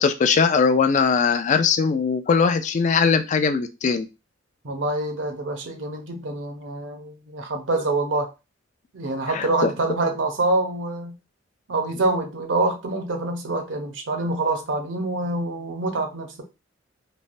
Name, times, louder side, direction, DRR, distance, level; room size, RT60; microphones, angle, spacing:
voice 1, 0.0-4.1 7.7-7.8 9.3-9.7, left 5 dB, 40° left, 0.3 m, -20 dB
voice 2, 4.6-8.3 8.9-11.1 11.7-16.4, right 2 dB, 70° right, 0.7 m, -26 dB
3.1 x 2.1 x 2.6 m
head